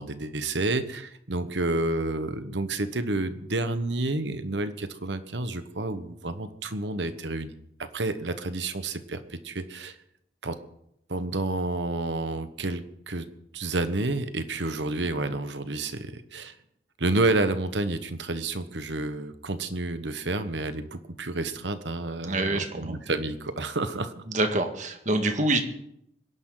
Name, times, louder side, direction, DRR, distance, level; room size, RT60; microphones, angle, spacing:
voice 1, 0.0-7.5 7.8-10.0 10.4-10.6 11.1-13.3 13.5-16.5 17.0-24.2, right 2 dB, 90° right, 10 dB, 1.3 m, -30 dB
voice 2, 22.3-23.0 24.3-25.6, right 2 dB, 45° right, 5 dB, 1.9 m, -26 dB
25.0 x 11.0 x 4.0 m, 0.77 s
head